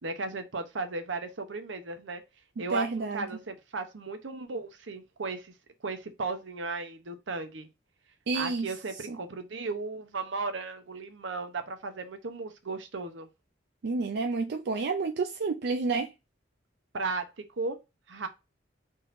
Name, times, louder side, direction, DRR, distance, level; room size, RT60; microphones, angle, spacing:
voice 1, 0.0-2.2 2.6-5.5 5.8-7.7 8.3-13.3 16.9-17.8 18.1-18.3, right 3 dB, 80° right, 0.8 m, -35 dB
voice 2, 2.7-3.3 8.3-8.7 9.1-9.2 13.8-16.1, right 4 dB, 60° right, 0.4 m, -30 dB
3.9 x 2.6 x 3.9 m
head